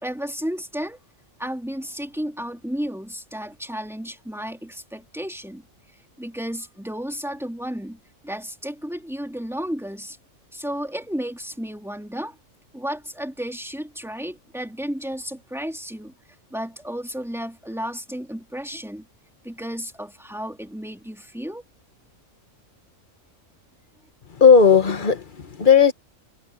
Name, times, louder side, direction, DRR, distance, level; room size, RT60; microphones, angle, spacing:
voice 1, 0.0-1.0 1.4-10.2 10.5-12.4 12.7-16.1 16.5-19.1 19.4-21.6, equal, ahead, 3.0 m, -33 dB
voice 2, 24.3-25.9, left 6 dB, 40° left, 1.5 m, -15 dB
omnidirectional pair, 1.4 m